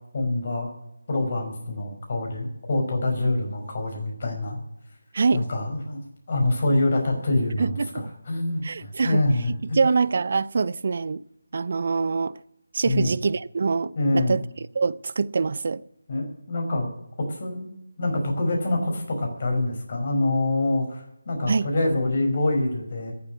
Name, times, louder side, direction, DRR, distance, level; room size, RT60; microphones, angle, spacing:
voice 1, 0.1-0.7 1.1-4.6 5.3-6.0 6.3-9.8 12.8-13.1 13.9-14.4 16.1-16.9 17.2-17.7 18.0-23.1, left 2 dB, 45° left, 5.0 m, -25 dB
voice 2, 5.1-5.5 7.6-8.0 8.6-9.2 9.7-11.2 11.5-12.4 12.7-14.4 14.7-15.8 21.5-21.7, right 4 dB, 45° right, 0.5 m, -24 dB
14.0 x 7.4 x 9.6 m
figure-of-eight pair, 160°, 0 cm